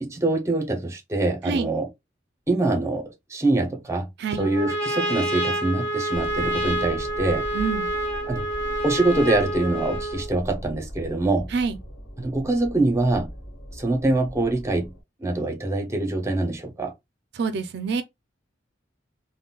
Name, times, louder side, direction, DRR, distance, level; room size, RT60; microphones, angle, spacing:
voice 1, 0.0-1.9 2.5-4.1 4.4-7.5 8.3-8.5 8.8-11.5 12.2-13.3 13.7-14.9 15.2-16.9, right 2 dB, 15° right, 0.7 m, -24 dB
Trumpet, 4.3-10.3, right 1 dB, 10° left, 1.7 m, -28 dB
sound 1, 6.1-15.0, equal, 50° left, 1.5 m, -39 dB
voice 2, 7.5-7.9 11.5-11.8 17.3-18.0, right 5 dB, 65° right, 0.4 m, -26 dB
3.7 x 2.1 x 2.3 m
head